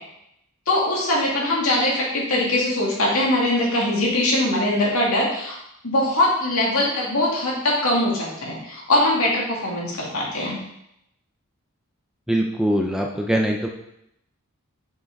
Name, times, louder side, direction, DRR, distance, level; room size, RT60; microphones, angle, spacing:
voice 1, 0.7-5.5 5.8-10.6, left 1 dB, 70° left, -4 dB, 2.5 m, -22 dB
voice 2, 12.3-13.7, equal, 5° right, 1 dB, 0.6 m, -22 dB
6.5 x 6.0 x 4.6 m, 0.80 s
head